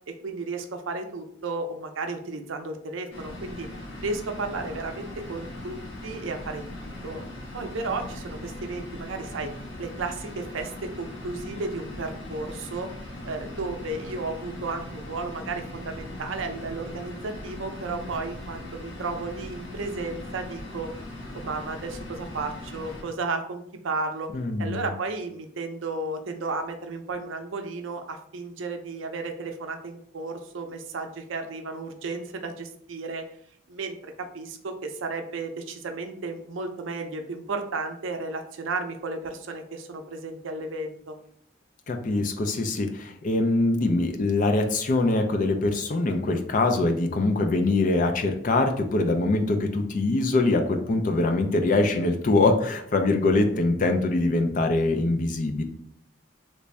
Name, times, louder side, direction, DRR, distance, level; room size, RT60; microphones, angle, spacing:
voice 1, 0.2-3.7 4.0-5.8 6.0-6.6 7.0-7.2 7.5-9.5 9.8-12.9 13.2-20.9 21.3-24.3 24.6-33.2 33.7-41.2, right 3 dB, 85° right, 5 dB, 0.5 m, -33 dB
sound 1, 3.1-23.0, left 1 dB, 70° left, 1.1 m, -39 dB
voice 2, 24.3-24.9 41.9-55.6, left 2 dB, 45° left, 5 dB, 0.4 m, -23 dB
3.2 x 2.6 x 3.2 m, 0.65 s
head